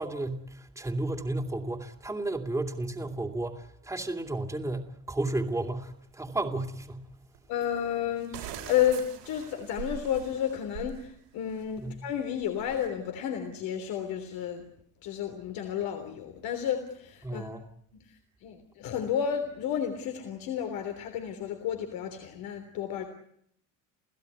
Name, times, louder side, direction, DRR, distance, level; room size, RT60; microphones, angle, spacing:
voice 1, 0.0-7.1 11.8-12.0 17.2-17.6, right 2 dB, 10° right, 2.8 m, -33 dB
sound 1, 7.3-7.4 8.1-11.0 11.4-11.7 12.4-12.9, right 10 dB, 85° right, 7.5 m, -43 dB
voice 2, 7.5-14.6 15.0-17.5 17.9-23.0, left 9 dB, 70° left, 3.5 m, -32 dB
30.0 x 16.0 x 9.6 m
supercardioid pair, 100°, 37 cm